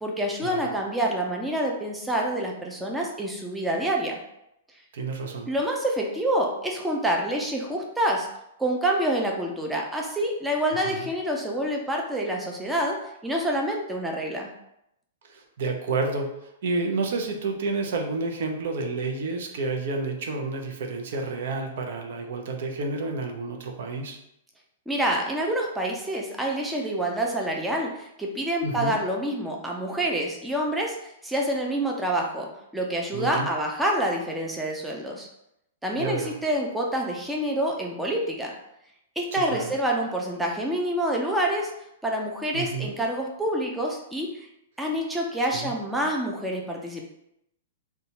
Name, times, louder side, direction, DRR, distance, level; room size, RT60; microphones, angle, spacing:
voice 1, 0.0-4.2 5.5-8.3 8.6-14.5 24.9-35.3 35.8-38.5 39.2-41.7 42.0-44.5 44.8-47.0, right 1 dB, 5° right, -1 dB, 0.4 m, -27 dB
voice 2, 4.9-5.5 10.7-11.1 15.3-16.3 16.6-24.2 28.6-29.0 33.1-33.5 36.0-36.4 39.3-39.7 42.5-42.9 45.5-45.7, right 3 dB, 65° right, 3 dB, 0.5 m, -30 dB
2.7 x 2.2 x 2.8 m, 0.80 s
hypercardioid pair, 130°, 0 cm